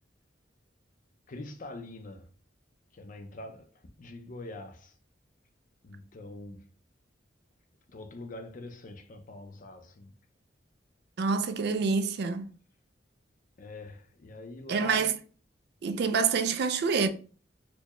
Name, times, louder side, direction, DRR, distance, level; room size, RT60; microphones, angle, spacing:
voice 1, 1.3-2.3 2.9-3.7 4.0-4.9 5.8-6.7 7.9-10.1 13.6-15.1, left 2 dB, 45° left, 0.5 m, -44 dB
voice 2, 11.2-12.5 14.7-15.1 15.8-17.1, right 5 dB, 60° right, 0.4 m, -27 dB
4.3 x 2.1 x 2.9 m
head